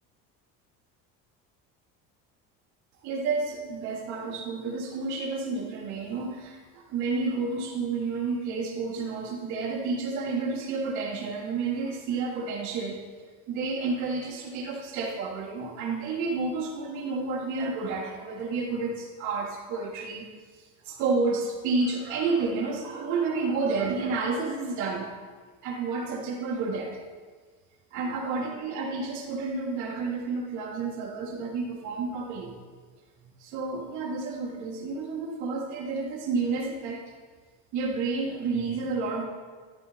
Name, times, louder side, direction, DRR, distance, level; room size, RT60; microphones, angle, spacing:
voice 1, 3.0-13.0 13.5-20.3 20.8-25.1 25.6-27.0 27.9-32.6 33.4-37.0 37.7-39.3, right 4 dB, 55° right, -2 dB, 3.2 m, -30 dB
14.0 x 13.5 x 4.2 m, 1.5 s
cardioid pair, 175°, 35 cm